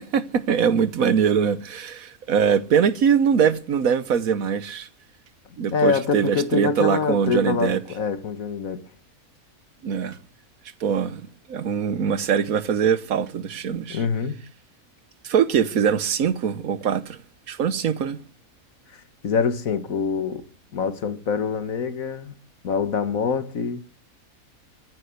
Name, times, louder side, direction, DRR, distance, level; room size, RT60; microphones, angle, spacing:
voice 1, 0.0-4.9 5.6-7.8 9.8-10.2 10.8-11.2 11.5-14.0 15.2-17.2 17.5-18.2, right 7 dB, 75° right, 1.5 m, -22 dB
voice 2, 5.7-8.9 13.9-14.4 18.9-20.5 20.7-22.3 22.6-23.8, left 5 dB, 70° left, 1.8 m, -25 dB
14.5 x 11.0 x 8.0 m
omnidirectional pair, 1.5 m